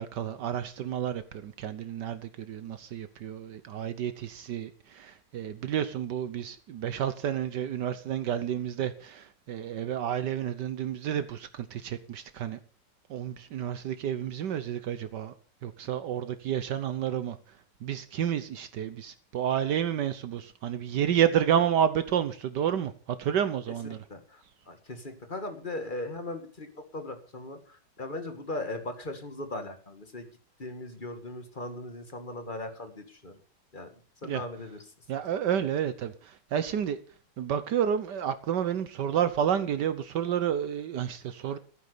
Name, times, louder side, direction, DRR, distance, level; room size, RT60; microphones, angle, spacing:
voice 1, 0.0-12.6 13.1-15.3 15.6-17.4 17.8-22.9 23.2-24.0 34.2-34.4 35.1-36.1 36.5-37.0 37.4-41.6, right 9 dB, 70° right, 1.5 m, -30 dB
voice 2, 23.7-30.3 30.6-33.4 33.7-33.9 34.2-34.8 41.5-41.6, left 2 dB, 25° left, 2.1 m, -39 dB
15.0 x 9.5 x 6.8 m
omnidirectional pair, 1.9 m